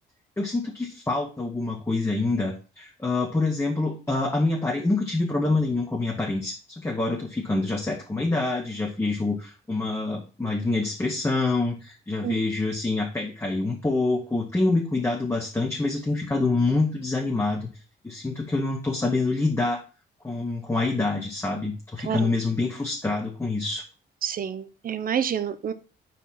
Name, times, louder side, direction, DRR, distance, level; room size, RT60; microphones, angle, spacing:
voice 1, 0.4-17.7 18.0-19.8 20.2-23.8, left 3 dB, 15° left, 0 dB, 0.9 m, -26 dB
voice 2, 24.2-25.7, right 8 dB, 45° right, 12 dB, 0.6 m, -28 dB
4.5 x 4.2 x 5.6 m, 0.35 s
cardioid pair, 90°, 20 cm